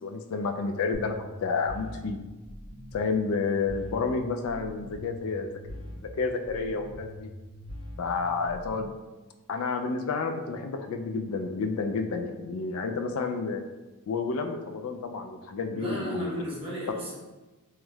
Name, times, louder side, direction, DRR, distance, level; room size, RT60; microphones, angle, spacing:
voice 1, 0.0-2.2 2.9-7.3 8.0-8.9 9.5-13.6 14.1-16.4, left 4 dB, 65° left, 5 dB, 0.3 m, -30 dB
sound 1, 0.9-8.9, left 1 dB, 40° left, 1.3 m, -43 dB
voice 2, 15.7-17.1, equal, 25° right, -7 dB, 1.0 m, -35 dB
3.2 x 3.0 x 2.3 m, 1.2 s
head